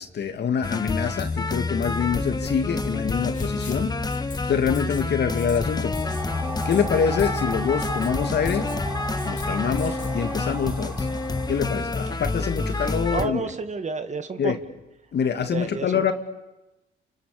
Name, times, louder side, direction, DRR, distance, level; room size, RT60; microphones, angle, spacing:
voice 1, 0.0-5.9 6.6-8.7 9.2-11.1 11.5-13.5 14.4-14.6 15.1-16.1, left 7 dB, 55° left, 7 dB, 2.6 m, -25 dB
sound 1, 0.6-13.2, left 3 dB, 20° left, 1.4 m, -28 dB
Writing, 3.3-4.4 4.7-5.0 5.4-5.6 5.9-6.2 6.6-6.9 7.2-7.4 7.8-8.1 8.5-8.8 9.2-9.4 9.8-10.1, left 4 dB, 40° left, 3.8 m, -43 dB
sound 2, 5.8-13.0, right 1 dB, 10° right, 5.2 m, -36 dB
voice 2, 13.1-14.5 15.5-16.1, right 4 dB, 35° right, 8 dB, 2.1 m, -30 dB
30.0 x 29.0 x 6.9 m, 0.97 s
cardioid pair, 90°, 20 cm